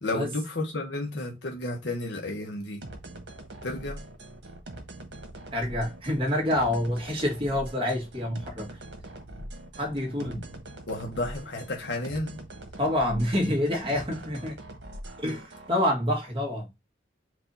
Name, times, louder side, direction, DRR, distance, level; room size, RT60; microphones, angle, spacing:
voice 1, 0.0-2.8 3.6-4.0 10.3-10.4 10.9-12.4, left 2 dB, 80° left, 1.1 m, -32 dB
sound 1, 2.8-15.7, right 1 dB, 80° right, 1.4 m, -43 dB
voice 2, 5.5-8.8 9.7-10.4 12.8-14.6 15.2-16.7, left 1 dB, 30° right, 1.7 m, -27 dB
4.8 x 2.7 x 3.8 m
head